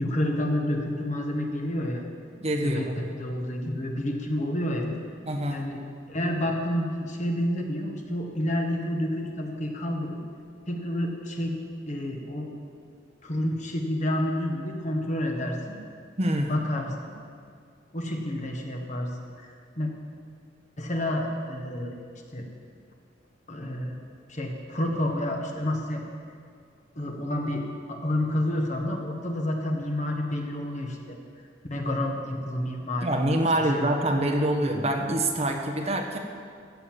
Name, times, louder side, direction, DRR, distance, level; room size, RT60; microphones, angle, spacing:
voice 1, 0.0-2.1 2.6-4.9 5.5-5.8 6.1-10.2 10.7-11.5 11.9-12.5 13.2-15.8 16.5-16.9 17.9-19.1 19.4-19.9 20.8-22.0 22.3-22.4 23.5-24.0 24.3-26.0 26.9-31.2 31.7-33.2 33.7-33.8, left 1 dB, 40° left, 2 dB, 1.6 m, -29 dB
voice 2, 2.4-3.1 5.3-5.6 16.2-16.5 33.0-36.2, right 1 dB, 35° right, 2 dB, 1.2 m, -25 dB
15.5 x 6.9 x 7.4 m, 2.2 s
head